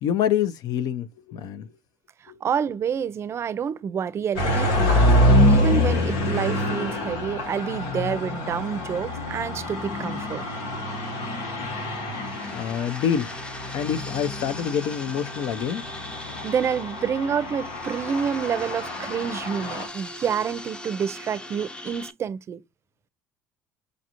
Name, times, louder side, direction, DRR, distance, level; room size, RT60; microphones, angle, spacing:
voice 1, 0.0-1.7 2.3-2.4 12.5-13.3 13.7-15.8, left 9 dB, 70° left, 0.6 m, -26 dB
voice 2, 2.4-10.5 16.4-22.6, right 7 dB, 40° right, 0.5 m, -28 dB
sound 1, 4.4-19.9, left 1 dB, 90° left, 1.2 m, -26 dB
sound 2, 11.8-22.1, left 1 dB, 15° left, 0.6 m, -40 dB
5.1 x 2.4 x 2.9 m
cardioid pair, 110°, 7 cm